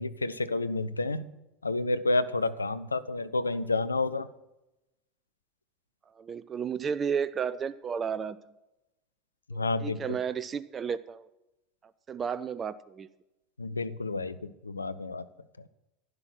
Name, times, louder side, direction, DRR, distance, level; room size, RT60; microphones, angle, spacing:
voice 1, 0.0-1.3 1.6-4.3 9.5-10.2 13.6-15.2, left 2 dB, 85° left, 14 dB, 0.5 m, -30 dB
voice 2, 6.2-8.4 9.5-11.3 12.1-13.1, right 7 dB, 30° right, 16 dB, 0.4 m, -33 dB
11.0 x 10.5 x 6.1 m, 0.93 s
figure-of-eight pair, 75°, 0 cm